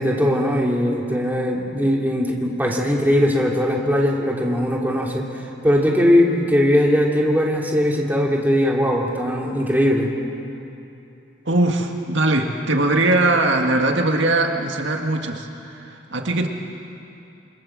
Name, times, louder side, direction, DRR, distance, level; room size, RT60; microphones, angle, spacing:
voice 1, 0.0-5.2 5.6-10.1, equal, 10° right, -2 dB, 2.9 m, -19 dB
voice 2, 11.5-16.5, right 2 dB, 70° right, 3 dB, 1.9 m, -20 dB
27.0 x 24.5 x 7.5 m, 2.8 s
head